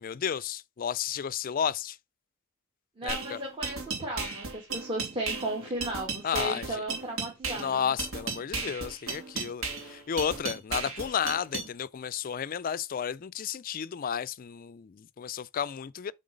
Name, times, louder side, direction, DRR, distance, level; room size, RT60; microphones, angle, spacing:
voice 1, 0.0-2.0 3.0-3.4 6.2-6.8 7.5-16.1, left 8 dB, 40° left, 0.3 m, -32 dB
voice 2, 3.0-7.9, right 1 dB, 25° right, 1.7 m, -35 dB
sound 1, 3.1-11.7, right 4 dB, 65° right, 2.6 m, -35 dB
7.6 x 3.9 x 5.2 m
head